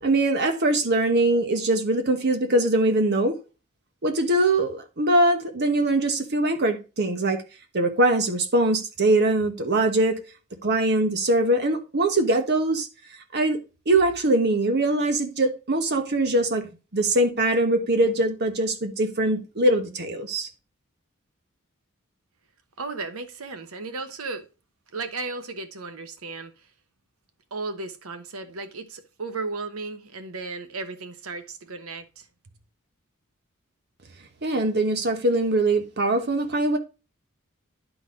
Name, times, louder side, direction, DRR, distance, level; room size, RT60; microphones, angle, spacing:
voice 1, 0.0-3.3 4.0-7.4 7.7-10.2 10.6-12.9 13.3-13.6 13.9-16.7 16.9-20.5 34.4-36.8, right 2 dB, 50° right, 1.2 m, -22 dB
voice 2, 22.8-24.5 24.9-26.5 27.5-32.3, right 3 dB, 85° right, 1.0 m, -35 dB
11.0 x 4.0 x 3.8 m
head